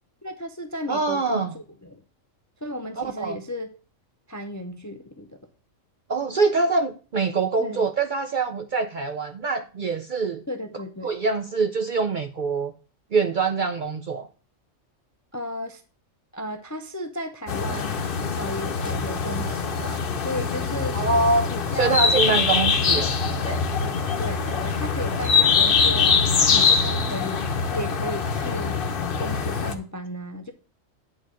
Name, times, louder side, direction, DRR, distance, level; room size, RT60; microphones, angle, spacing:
voice 1, 0.2-2.0 2.6-3.7 4.3-5.4 7.6-7.9 10.5-11.1 15.3-15.8 16.3-18.0 18.3-21.0 21.5-22.0 22.8-22.9 23.5-28.8 29.2-30.5, left 1 dB, 25° left, 0.4 m, -34 dB
voice 2, 0.9-1.5 3.0-3.4 6.1-10.4 11.0-12.7 13.1-14.3 20.9-23.1, right 4 dB, 55° right, 0.6 m, -24 dB
sound 1, 17.5-29.7, left 5 dB, 50° left, 0.9 m, -23 dB
8.9 x 4.0 x 6.2 m
omnidirectional pair, 1.3 m